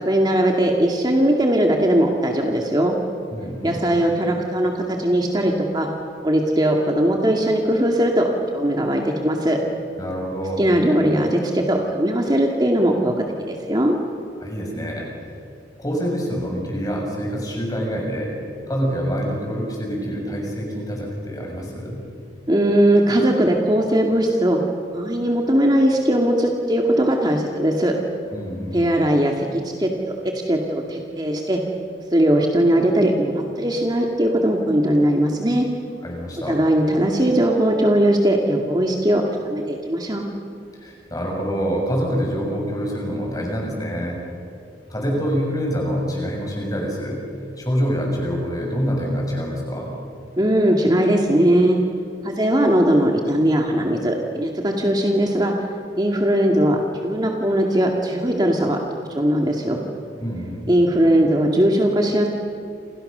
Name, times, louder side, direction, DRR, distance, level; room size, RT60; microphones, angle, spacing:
voice 1, 0.1-3.0 3.6-5.9 6.2-9.6 10.6-13.1 13.5-14.0 22.5-24.6 24.9-27.9 28.7-31.6 32.1-35.7 36.5-40.3 50.4-51.8 52.2-55.5 56.0-58.8 59.1-59.8 60.7-62.3, right 1 dB, 25° right, 1 dB, 2.2 m, -19 dB
voice 2, 3.3-3.8 10.0-10.6 14.4-15.1 15.8-18.4 18.7-22.0 28.3-28.8 36.0-36.6 40.7-44.2 44.9-47.2 47.6-50.0 60.2-60.7, equal, 20° left, 0 dB, 7.0 m, -26 dB
29.5 x 28.5 x 6.8 m, 2.4 s
head